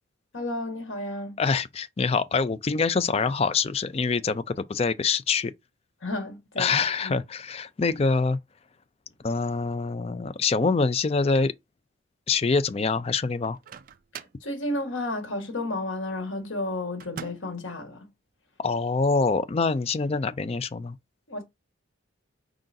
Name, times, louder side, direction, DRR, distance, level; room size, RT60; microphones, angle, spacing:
voice 1, 0.3-1.4 6.0-6.7 7.0-7.2 14.1-18.1 21.3-21.4, left 1 dB, 70° left, 1.5 m, -32 dB
voice 2, 1.4-5.5 6.6-8.4 9.2-11.5 12.3-13.6 18.6-21.0, left 4 dB, 30° left, 0.3 m, -25 dB
Microwave oven, 13.4-14.5 17.0-17.6, right 7 dB, 45° right, 0.3 m, -43 dB
4.9 x 3.8 x 2.6 m
head